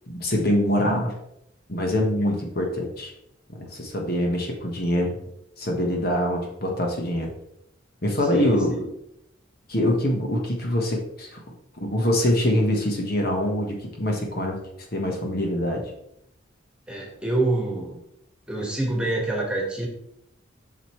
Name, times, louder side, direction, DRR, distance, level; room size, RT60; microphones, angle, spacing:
voice 1, 0.1-1.1 1.7-3.1 3.7-5.2 5.6-7.3 8.0-8.9 9.7-11.4 11.8-14.6 14.9-15.9, left 1 dB, 50° left, 1 dB, 1.3 m, -24 dB
voice 2, 8.2-8.8 16.9-17.9 18.5-19.9, right 2 dB, 5° right, -2 dB, 1.6 m, -26 dB
7.9 x 6.1 x 3.2 m, 0.78 s
head